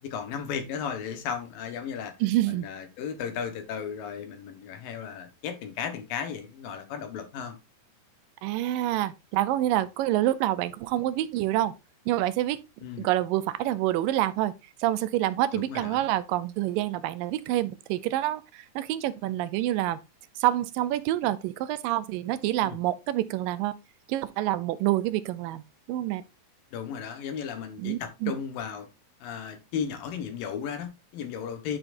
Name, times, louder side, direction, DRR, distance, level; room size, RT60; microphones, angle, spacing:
voice 1, 0.0-2.1 2.5-7.6 12.8-13.1 15.5-16.0 22.6-22.8 26.7-28.9 29.2-31.8, left 7 dB, 80° left, 3.0 m, -35 dB
voice 2, 2.2-2.7 8.4-11.7 12.1-12.6 13.0-14.5 14.8-20.0 20.4-23.7 24.1-26.2 27.8-28.3, right 14 dB, 80° right, 2.2 m, -27 dB
11.0 x 5.8 x 2.6 m
omnidirectional pair, 4.0 m